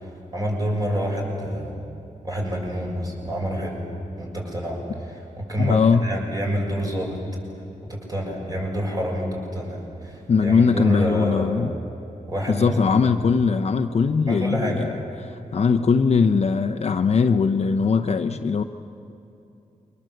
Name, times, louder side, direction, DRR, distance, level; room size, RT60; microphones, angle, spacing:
voice 1, 0.0-1.8 2.2-3.8 4.2-7.2 7.8-11.7 12.3-12.7 13.0-13.1 14.3-14.8, equal, 25° right, -1 dB, 6.3 m, -28 dB
voice 2, 5.6-6.0 10.3-11.7 12.5-14.9 15.2-18.6, left 5 dB, 50° left, 7 dB, 0.8 m, -20 dB
28.5 x 24.0 x 7.9 m, 2.8 s
wide cardioid pair, 140°, 14 cm